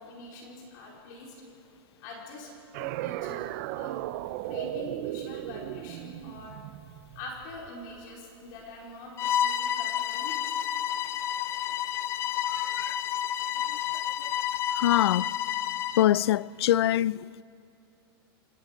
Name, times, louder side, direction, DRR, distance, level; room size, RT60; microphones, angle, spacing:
voice 1, 0.0-1.4 2.0-2.5 2.8-4.0 4.4-6.6 7.1-9.1 9.4-10.4, left 2 dB, 50° left, 4.4 m, -44 dB
sound 1, 2.7-8.1, right 15 dB, 40° right, 0.5 m, -36 dB
Bowed string instrument, 9.2-16.1, left 10 dB, 20° left, 0.4 m, -30 dB
voice 2, 12.5-13.0 14.8-15.3 16.0-17.4, left 13 dB, 80° left, 0.4 m, -24 dB
27.0 x 19.0 x 5.2 m
supercardioid pair, 160°, 13 cm